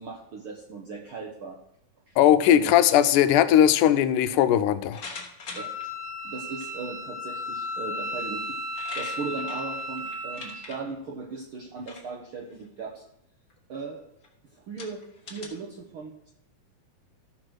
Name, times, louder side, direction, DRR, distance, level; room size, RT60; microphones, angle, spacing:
voice 1, 0.0-1.6 2.1-2.2 2.5-2.7 5.5-5.7 6.2-8.4 8.9-13.0 13.7-14.1 14.5-16.3, right 4 dB, 70° right, 1 dB, 1.2 m, -38 dB
voice 2, 2.2-5.0, left 10 dB, 85° left, 12 dB, 2.1 m, -19 dB
sound 1, 4.9-5.9 6.6-6.7 8.2-8.3 8.5-10.8 11.8-12.1 12.5-12.8 13.5-13.6 14.2-14.3 14.8-15.5, left 4 dB, 40° left, 1.4 m, -42 dB
Wind instrument woodwind instrument, 5.6-10.7, left 1 dB, 35° right, 0.9 m, -34 dB
13.0 x 4.8 x 6.1 m, 0.78 s
omnidirectional pair, 3.6 m